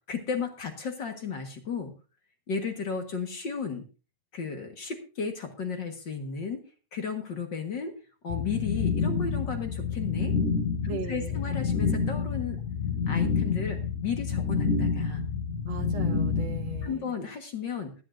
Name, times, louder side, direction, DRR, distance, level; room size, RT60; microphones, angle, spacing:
voice 1, 0.1-1.9 2.5-3.8 4.3-6.6 6.9-8.0 8.2-10.4 10.8-12.6 13.1-15.2 16.8-17.9, left 6 dB, 45° left, 4 dB, 1.9 m, -34 dB
sound 1, 8.3-16.9, left 5 dB, 75° left, 3.3 m, -28 dB
voice 2, 10.9-11.5 15.7-17.1, right 6 dB, 60° right, 3 dB, 2.9 m, -38 dB
19.5 x 11.0 x 2.6 m, 0.33 s
omnidirectional pair, 3.5 m